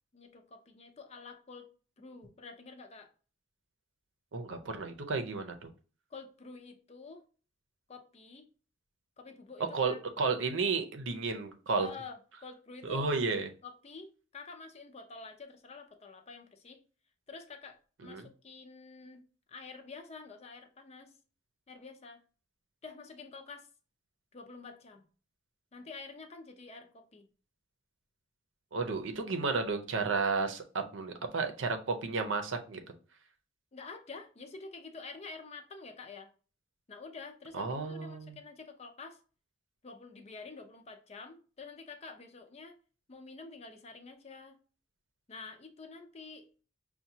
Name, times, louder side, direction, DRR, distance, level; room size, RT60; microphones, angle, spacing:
voice 1, 0.1-1.7 2.0-3.1 6.1-7.2 7.9-8.5 9.2-10.0 11.8-13.1 13.6-16.8 17.3-17.8 18.0-19.2 19.5-21.1 21.7-22.2 22.8-23.7 24.3-25.0 25.7-27.3 33.7-36.3 36.9-39.2 39.8-42.7 43.1-44.6 45.3-46.5, left 4 dB, 35° left, 6 dB, 0.5 m, -48 dB
voice 2, 4.3-5.7 9.6-11.9 12.8-13.5 18.0-18.3 28.7-32.8 37.5-38.4, right 4 dB, 90° right, 6 dB, 0.6 m, -32 dB
5.7 x 2.2 x 2.7 m, 0.38 s
head